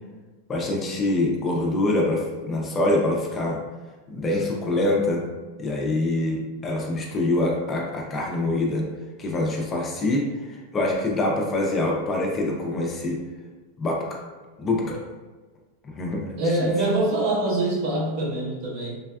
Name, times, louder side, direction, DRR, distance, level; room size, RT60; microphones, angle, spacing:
voice 1, 0.5-3.6 4.1-5.3 5.6-8.9 9.2-13.2 13.8-14.1 14.6-15.0 16.0-16.3 16.6-16.7, left 2 dB, 20° left, -1 dB, 0.4 m, -25 dB
voice 2, 16.4-19.0, right 2 dB, 50° right, -3 dB, 0.8 m, -24 dB
3.3 x 2.2 x 2.3 m, 1.3 s
supercardioid pair, 150°, 0 cm